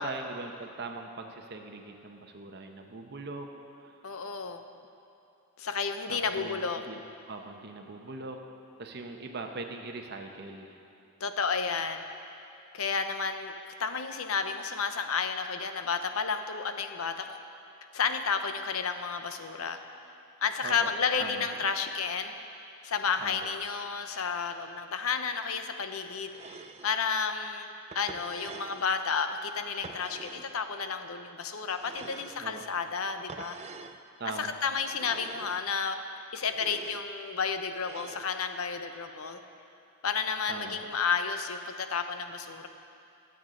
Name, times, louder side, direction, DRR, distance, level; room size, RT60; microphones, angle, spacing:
voice 1, 0.0-3.5 6.1-7.0 7.3-8.5 8.8-10.8 20.6-20.9 21.2-21.4 23.2-23.5 32.4-32.6 34.2-34.5 40.5-40.8, right 3 dB, 55° right, 4 dB, 0.9 m, -40 dB
voice 2, 4.0-4.6 5.6-6.8 11.2-12.0 12.7-17.4 17.9-19.8 20.4-22.3 22.8-26.6 26.8-27.7 27.9-33.6 34.4-36.0 36.3-39.4 40.0-42.7, left 5 dB, 85° left, 7 dB, 0.8 m, -31 dB
sound 1, 26.3-26.9 27.9-28.9 29.8-30.5 31.8-32.5 33.3-34.0 34.9-35.6 36.5-37.0 37.8-38.3, right 4 dB, 30° right, 0.4 m, -46 dB
23.5 x 7.9 x 3.9 m, 2.7 s
head